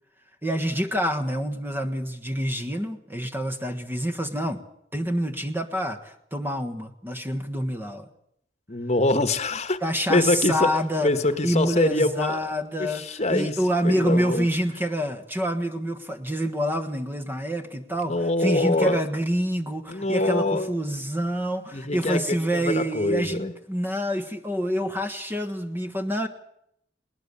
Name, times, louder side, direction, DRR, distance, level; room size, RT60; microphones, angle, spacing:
voice 1, 0.4-4.6 4.9-8.1 9.8-11.1 11.4-13.0 13.3-18.1 18.4-26.3, equal, 10° right, 7 dB, 1.4 m, -27 dB
voice 2, 8.7-9.8 10.1-10.7 11.0-12.4 12.8-13.6 13.8-14.5 18.0-19.0 19.9-20.7 21.7-23.5, left 2 dB, 40° left, 11 dB, 1.4 m, -24 dB
20.5 x 19.5 x 7.0 m, 0.74 s
head